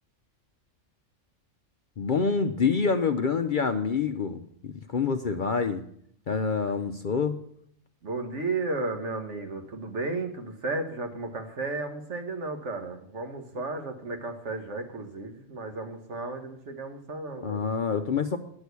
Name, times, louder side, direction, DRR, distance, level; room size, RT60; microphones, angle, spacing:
voice 1, 2.0-5.8 6.3-7.4 17.4-18.4, left 5 dB, 50° left, 8 dB, 0.6 m, -27 dB
voice 2, 8.0-17.6, right 3 dB, 65° right, 5 dB, 1.7 m, -34 dB
10.5 x 6.4 x 8.2 m, 0.67 s
omnidirectional pair, 1.3 m